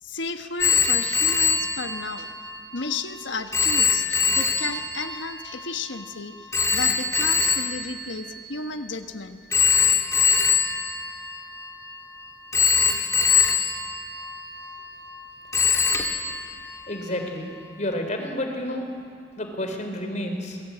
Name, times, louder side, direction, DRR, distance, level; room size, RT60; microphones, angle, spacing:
voice 1, 0.0-2.3 2.7-9.4, left 4 dB, 75° left, 7 dB, 1.4 m, -33 dB
Telephone, 0.6-9.0 9.5-12.0 12.5-15.2 15.5-17.3, left 5 dB, 15° left, 1.8 m, -24 dB
voice 2, 16.9-17.5 17.8-18.9 19.4-20.6, left 1 dB, 40° left, 4 dB, 3.9 m, -30 dB
27.5 x 21.0 x 8.7 m, 2.2 s
head